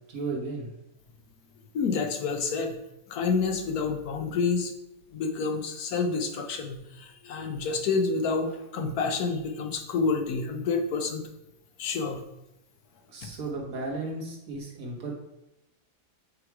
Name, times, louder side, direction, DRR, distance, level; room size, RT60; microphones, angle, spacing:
voice 1, 0.1-0.7 13.1-15.1, right 3 dB, 60° right, -1 dB, 1.9 m, -34 dB
voice 2, 1.7-2.8 3.1-4.7 5.1-11.2 11.8-12.2 13.2-13.3, left 4 dB, 70° left, 5 dB, 1.3 m, -28 dB
8.8 x 3.2 x 4.6 m, 0.87 s
omnidirectional pair, 1.7 m